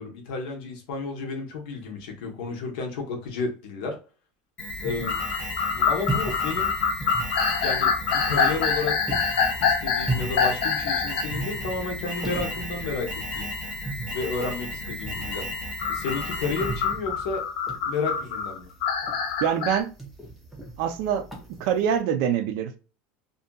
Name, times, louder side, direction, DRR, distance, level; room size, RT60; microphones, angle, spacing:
voice 1, 0.0-4.0 4.8-5.2 5.7-6.7 7.6-9.0 9.6-13.5 14.1-15.5 15.9-17.4 17.8-18.7, left 4 dB, 70° left, 0.9 m, -32 dB
Alarm, 4.6-17.0, left 1 dB, 30° left, 1.2 m, -35 dB
sound 1, 4.6-22.0, right 2 dB, ahead, 0.6 m, -37 dB
sound 2, 5.0-11.3 11.8-11.9 13.3-13.4 15.8-19.8, left 6 dB, 90° left, 0.5 m, -25 dB
voice 2, 19.4-19.9 20.8-21.3 21.6-22.8, right 8 dB, 55° right, 0.4 m, -24 dB
2.6 x 2.6 x 2.2 m
supercardioid pair, 165°, 5 cm